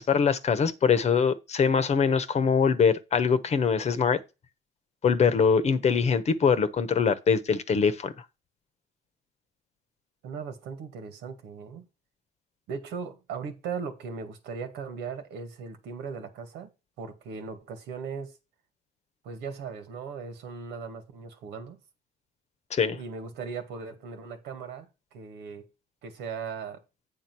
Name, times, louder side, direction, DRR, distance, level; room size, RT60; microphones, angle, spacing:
voice 1, 0.0-4.2 5.0-8.1 22.7-23.0, left 6 dB, 40° left, 1.0 m, -23 dB
voice 2, 10.2-11.8 12.7-16.7 17.0-18.4 19.2-21.8 22.9-25.7 26.0-26.8, right 5 dB, 85° right, 1.8 m, -38 dB
8.7 x 3.7 x 6.1 m
cardioid pair, 110°, 17 cm